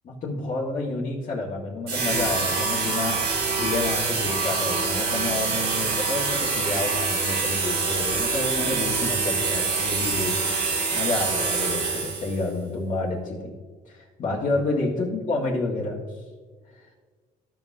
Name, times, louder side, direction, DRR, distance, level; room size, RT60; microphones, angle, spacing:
voice 1, 0.0-3.2 3.5-10.4 10.9-13.5 13.8-16.2, left 3 dB, 45° left, -6 dB, 1.7 m, -29 dB
sound 1, 1.9-12.4, right 4 dB, 70° right, 2.5 m, -25 dB
13.5 x 5.5 x 2.7 m, 1.5 s
cardioid pair, 110°, 17 cm